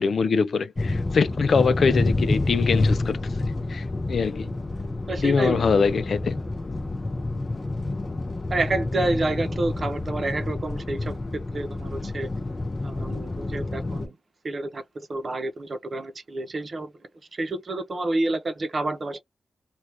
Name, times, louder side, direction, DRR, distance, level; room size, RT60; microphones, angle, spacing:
voice 1, 0.0-3.2 3.7-4.5 5.2-6.4, left 5 dB, 60° left, 0.5 m, -23 dB
sound 1, 0.8-14.1, left 2 dB, 25° left, 0.8 m, -28 dB
voice 2, 5.1-5.7 8.5-12.3 12.8-14.2 14.4-16.9 17.3-19.2, right 2 dB, 45° right, 0.8 m, -29 dB
3.3 x 2.4 x 2.9 m
wide cardioid pair, 100°, 0 cm